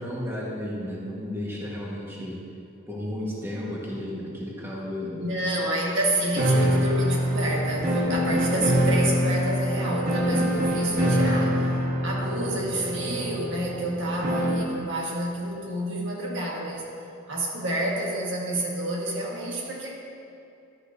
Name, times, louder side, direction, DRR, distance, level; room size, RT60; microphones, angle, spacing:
voice 1, 0.0-2.4 2.9-5.2, left 1 dB, 10° right, -5 dB, 1.4 m, -33 dB
voice 2, 5.1-11.7 12.0-16.9 17.3-19.9, right 1 dB, 65° right, -3 dB, 1.7 m, -29 dB
sound 1, 6.3-14.8, equal, 45° right, 1.3 m, -25 dB
12.5 x 11.0 x 2.7 m, 2.6 s
head